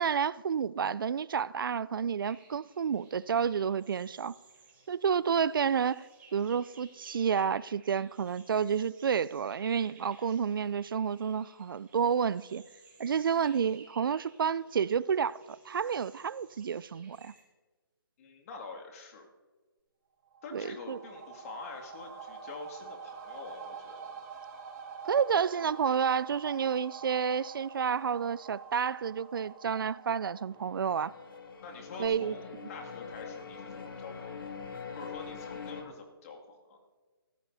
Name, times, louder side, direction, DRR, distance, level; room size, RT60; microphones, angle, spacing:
voice 1, 0.0-4.3 4.9-6.1 6.3-12.6 13.0-17.3 20.5-21.0 25.0-31.1 32.0-32.3, right 7 dB, 65° right, 0.4 m, -30 dB
sound 1, 2.2-17.4, right 4 dB, 10° right, 3.4 m, -59 dB
voice 2, 18.2-19.3 20.4-24.2 31.6-34.6 35.0-36.8, left 4 dB, 40° left, 2.2 m, -46 dB
sound 2, 20.3-31.7 32.0-32.1, right 6 dB, 40° right, 4.1 m, -46 dB
sound 3, 30.5-35.8, left 5 dB, 65° left, 2.3 m, -44 dB
25.0 x 14.5 x 2.7 m
figure-of-eight pair, 145°, 12 cm